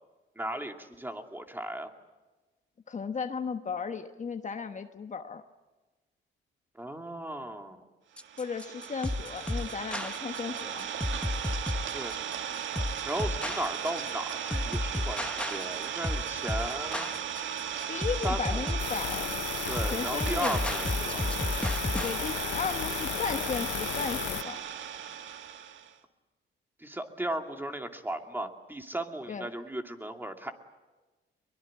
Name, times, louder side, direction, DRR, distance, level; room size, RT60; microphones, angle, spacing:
voice 1, 0.4-1.9 6.7-7.9 11.9-12.1 13.1-17.1 18.2-18.7 19.7-21.2 26.8-30.5, right 1 dB, 10° right, 4 dB, 2.6 m, -36 dB
voice 2, 2.9-5.4 8.4-10.9 17.9-19.3 19.9-20.6 22.0-24.6 29.3-29.5, left 5 dB, 40° left, 7 dB, 1.2 m, -35 dB
sound 1, 8.2-22.2, left 1 dB, 5° left, 0.9 m, -33 dB
Idling, 8.2-25.9, right 9 dB, 70° right, 1.7 m, -36 dB
sound 2, 18.8-24.4, left 13 dB, 75° left, 0.7 m, -35 dB
23.0 x 22.0 x 8.8 m, 1.2 s
cardioid pair, 90°, 20 cm